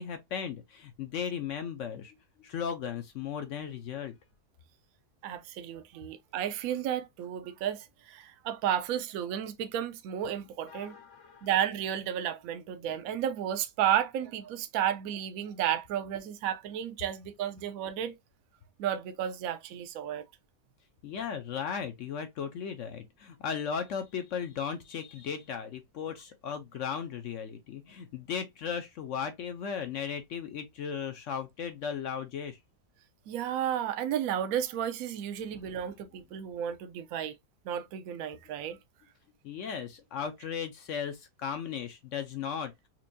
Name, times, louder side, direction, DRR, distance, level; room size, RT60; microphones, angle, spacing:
voice 1, 0.0-4.1 10.7-11.5 21.0-32.6 39.4-42.7, left 7 dB, 65° left, 0.8 m, -36 dB
voice 2, 5.2-10.9 11.4-18.2 18.8-20.2 33.3-37.4 37.6-38.8, right 10 dB, 70° right, 0.9 m, -32 dB
4.4 x 2.5 x 2.5 m
omnidirectional pair, 1.8 m